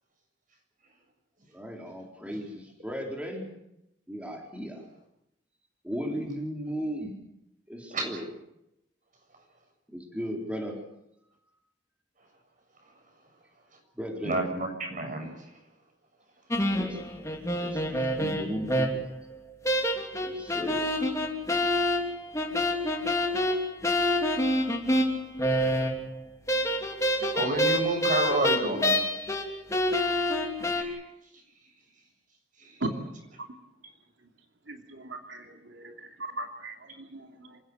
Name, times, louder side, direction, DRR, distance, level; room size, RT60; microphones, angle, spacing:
voice 1, 1.5-3.5 4.1-4.9 5.8-7.1 7.7-8.3 9.9-10.8 13.9-14.4 16.7-19.1 20.2-20.8, equal, 5° right, 1 dB, 4.1 m, -36 dB
voice 2, 14.2-15.3 27.3-29.0 30.6-31.0 32.6-32.7, right 1 dB, 45° right, 4 dB, 7.3 m, -29 dB
sound 1, 16.5-19.2 19.6-26.2 26.5-29.5 29.7-30.8, left 1 dB, 15° left, 3.2 m, -27 dB
voice 3, 32.8-33.6 34.7-37.6, right 2 dB, 90° right, 3 dB, 2.9 m, -38 dB
27.5 x 16.5 x 8.1 m, 0.82 s
head